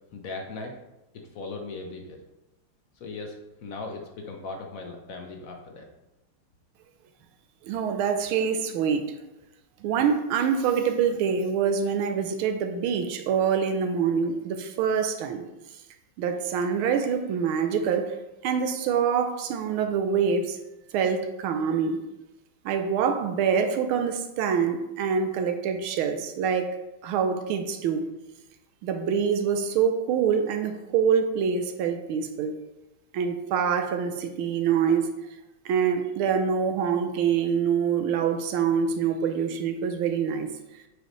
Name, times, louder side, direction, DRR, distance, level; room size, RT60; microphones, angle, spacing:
voice 1, 0.1-0.7 1.1-2.2 3.0-5.8, left 3 dB, 60° left, 3 dB, 0.9 m, -38 dB
voice 2, 7.6-9.1 9.8-15.4 16.2-18.1 18.4-20.6 20.9-22.0 22.6-26.7 27.0-28.1 28.8-32.5 33.1-35.1 35.6-40.5, right 7 dB, 85° right, 7 dB, 1.5 m, -25 dB
7.9 x 5.1 x 3.1 m, 0.95 s
omnidirectional pair, 2.3 m